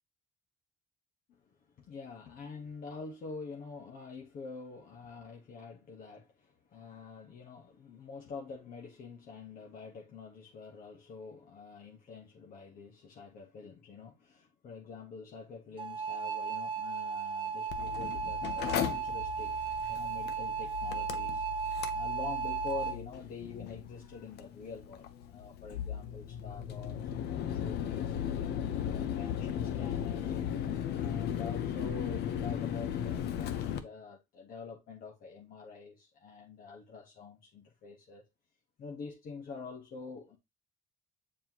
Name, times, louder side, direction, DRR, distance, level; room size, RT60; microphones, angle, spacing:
voice 1, 1.3-30.3 31.0-38.2 38.8-40.4, left 4 dB, 60° left, 1.4 m, -46 dB
sound 1, 15.8-23.0, right 6 dB, 30° right, 1.3 m, -35 dB
Mechanical fan, 17.7-33.8, left 9 dB, 75° left, 0.8 m, -36 dB
7.6 x 4.6 x 3.0 m
cardioid pair, 110°, 17 cm